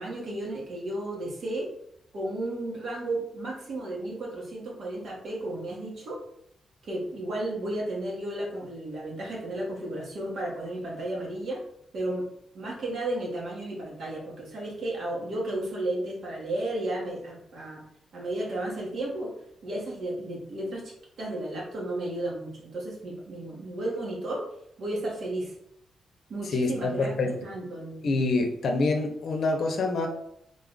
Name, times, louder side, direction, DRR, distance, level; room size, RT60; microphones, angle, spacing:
voice 1, 0.0-1.7 2.1-6.2 6.8-11.6 11.9-12.3 12.5-17.8 18.1-19.3 19.6-24.4 24.8-25.5 26.3-28.1, right 1 dB, 60° right, -3 dB, 1.4 m, -33 dB
voice 2, 26.4-27.3 28.0-30.1, left 3 dB, 60° left, 4 dB, 0.7 m, -26 dB
3.8 x 2.4 x 3.8 m, 0.73 s
cardioid pair, 130°, 0 cm